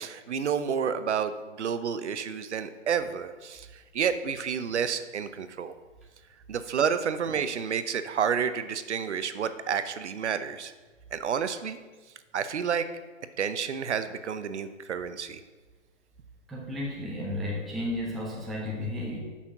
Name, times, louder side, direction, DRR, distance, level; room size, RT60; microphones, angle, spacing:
voice 1, 0.0-5.7 6.5-10.7 11.1-11.8 12.3-12.9 13.4-15.4, right 7 dB, 65° right, 12 dB, 0.7 m, -30 dB
voice 2, 16.5-19.2, left 1 dB, ahead, -4 dB, 0.3 m, -33 dB
6.9 x 5.8 x 5.8 m, 1.3 s
hypercardioid pair, 175°, 37 cm